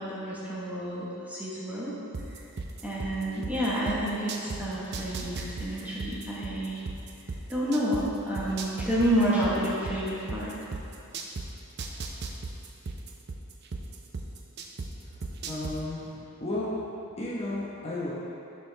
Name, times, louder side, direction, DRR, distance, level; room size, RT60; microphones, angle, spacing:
voice 1, 0.0-2.0 2.8-6.8 7.5-10.5, right 1 dB, 5° right, -8 dB, 1.1 m, -29 dB
sound 1, 2.1-4.6 4.9-8.0 8.3-11.4 11.8-14.9 15.2-15.7, right 4 dB, 50° right, 0.5 m, -35 dB
voice 2, 15.4-18.1, left 1 dB, 30° left, -6 dB, 0.9 m, -34 dB
10.5 x 4.6 x 3.3 m, 2.8 s
head